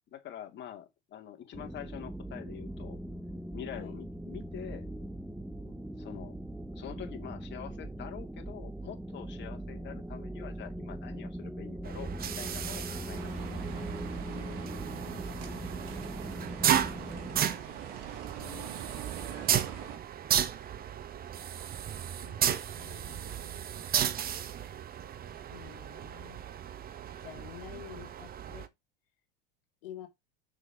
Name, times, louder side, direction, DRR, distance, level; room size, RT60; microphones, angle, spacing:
voice 1, 0.1-3.0 3.5-4.9 6.0-6.4 6.7-13.2 13.7-13.8 18.4-19.0, left 10 dB, 40° left, 2.2 m, -45 dB
sound 1, 1.5-17.4, right 1 dB, ahead, 0.8 m, -40 dB
voice 2, 5.6-5.9 14.2-15.8 17.1-18.0 22.2-23.7 25.5-26.5 27.2-28.7 29.8-30.1, left 12 dB, 75° left, 1.9 m, -50 dB
sound 2, 11.8-28.7, right 9 dB, 30° right, 1.1 m, -34 dB
sound 3, 13.1-20.0, right 8 dB, 55° right, 2.8 m, -44 dB
6.3 x 5.6 x 6.0 m
hypercardioid pair, 105°, 29 cm